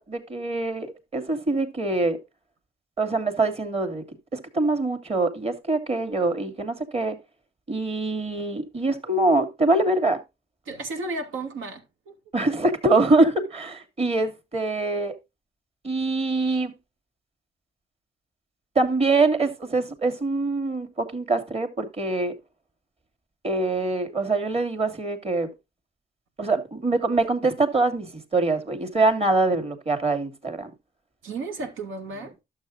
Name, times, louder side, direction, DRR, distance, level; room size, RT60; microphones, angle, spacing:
voice 1, 0.0-2.2 3.0-4.0 4.3-7.2 7.7-10.2 12.3-15.1 15.8-16.7 18.8-22.3 23.4-25.5 26.4-30.7, right 2 dB, 30° right, 2.6 m, -24 dB
voice 2, 10.6-12.1 31.2-32.3, right 3 dB, 80° right, 2.8 m, -33 dB
12.0 x 7.3 x 2.6 m
cardioid pair, 90°, 20 cm